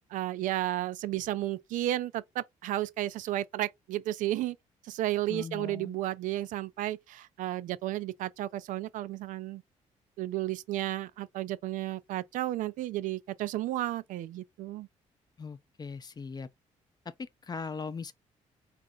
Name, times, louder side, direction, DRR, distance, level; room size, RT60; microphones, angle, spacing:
voice 1, 0.1-4.6 4.8-9.6 10.2-14.9, right 14 dB, 80° right, 0.4 m, -33 dB
voice 2, 5.3-6.0 15.4-16.5 17.0-18.1, left 5 dB, 30° left, 0.6 m, -39 dB
4.2 x 2.5 x 3.7 m
cardioid pair, 90°, 13 cm